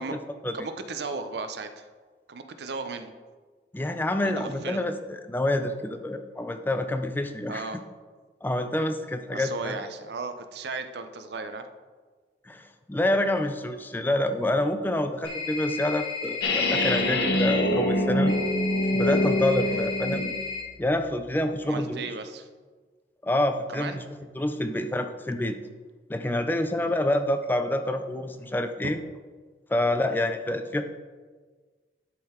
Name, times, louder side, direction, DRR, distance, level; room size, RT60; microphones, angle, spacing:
voice 1, 0.0-0.6 3.7-7.7 8.4-9.8 12.5-18.4 18.9-20.2 20.8-22.1 23.2-24.0 24.4-25.6 26.1-29.0 29.7-30.8, left 1 dB, 10° left, 7 dB, 0.3 m, -27 dB
voice 2, 0.5-1.9 2.3-3.1 4.2-4.8 7.5-7.8 9.3-11.7 19.6-19.9 21.7-22.5 23.7-24.0 30.1-30.3, right 4 dB, 70° right, 9 dB, 0.6 m, -36 dB
sound 1, 15.2-17.1 18.3-20.6, left 4 dB, 30° left, 1.7 m, -34 dB
sound 2, 16.4-20.4, left 1 dB, 65° left, 0.8 m, -25 dB
11.0 x 3.8 x 4.3 m, 1.4 s
head